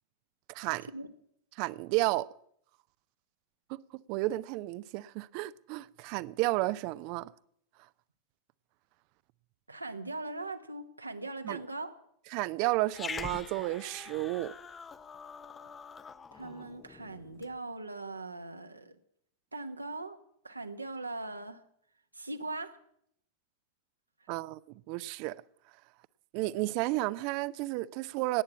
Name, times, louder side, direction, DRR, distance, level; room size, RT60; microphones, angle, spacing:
voice 1, 0.5-0.9 1.6-2.3 3.7-7.3 11.4-11.6 12.3-14.5 24.3-25.4 26.3-28.4, right 18 dB, 45° right, 0.5 m, -32 dB
voice 2, 9.7-11.9 16.3-19.0 19.5-20.2 20.4-21.6 22.1-22.8, right 2 dB, 80° right, 1.1 m, -40 dB
Growling, 12.9-17.5, left 5 dB, 20° left, 0.7 m, -44 dB
18.5 x 8.8 x 7.3 m
figure-of-eight pair, 90°, 0 cm